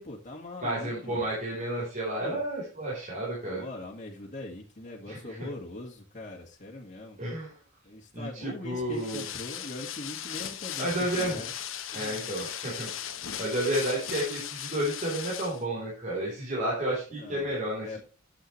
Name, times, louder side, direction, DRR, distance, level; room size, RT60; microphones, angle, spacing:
voice 1, 0.0-1.3 2.2-2.4 3.4-7.2 7.8-11.5 11.9-12.3 17.1-17.5 17.8-18.0, left 2 dB, 35° left, -2 dB, 1.9 m, -41 dB
voice 2, 0.6-3.6 5.1-5.5 7.2-7.5 8.1-9.3 10.8-11.4 11.9-12.9 13.4-18.0, right 1 dB, 35° right, -6 dB, 4.1 m, -31 dB
sound 1, 8.9-15.6, left 10 dB, 70° left, 1.1 m, -38 dB
10.0 x 7.9 x 3.2 m, 0.37 s
head